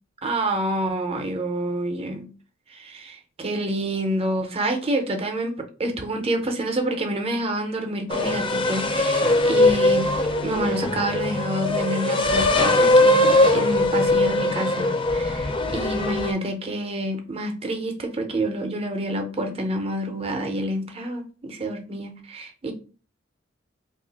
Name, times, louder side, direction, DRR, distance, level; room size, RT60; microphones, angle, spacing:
voice 1, 0.2-2.3 2.7-10.0 10.4-22.7, right 1 dB, 30° right, 5 dB, 0.6 m, -28 dB
sound 1, 8.1-16.3, left 2 dB, 25° left, 0.4 m, -20 dB
2.8 x 2.4 x 3.9 m, 0.37 s
head